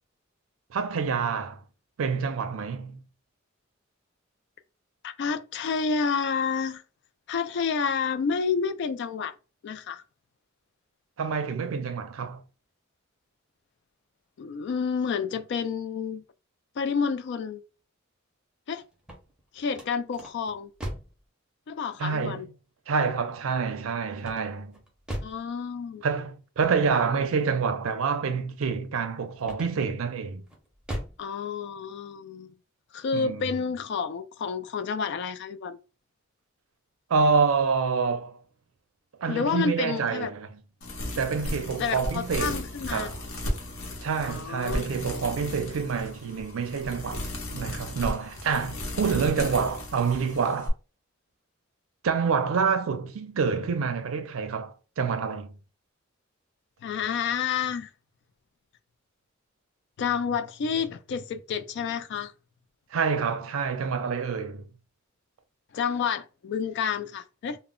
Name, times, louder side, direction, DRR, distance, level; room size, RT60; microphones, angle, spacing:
voice 1, 0.7-1.6 2.0-3.0 11.2-12.4 22.0-22.5 22.9-24.8 26.0-30.4 33.1-33.4 37.1-38.4 39.2-40.5 41.2-43.2 44.0-47.3 47.5-50.7 52.0-55.5 62.9-64.7, right 5 dB, 80° right, 0.4 m, -27 dB
voice 2, 5.0-6.8 7.3-9.3 9.6-10.0 14.4-16.2 16.8-17.6 18.7-18.8 19.5-20.7 21.7-22.5 25.2-26.0 31.2-32.5 32.9-35.8 39.3-40.3 41.8-43.1 44.2-44.9 56.8-57.9 60.0-62.3 65.7-67.6, left 6 dB, 60° left, 0.3 m, -29 dB
sound 1, 18.9-21.2 24.2-25.5 29.4-30.0 30.5-31.3, right 1 dB, 5° right, 0.6 m, -38 dB
sound 2, 40.8-50.7, left 1 dB, 80° left, 0.8 m, -35 dB
2.0 x 2.0 x 3.6 m
head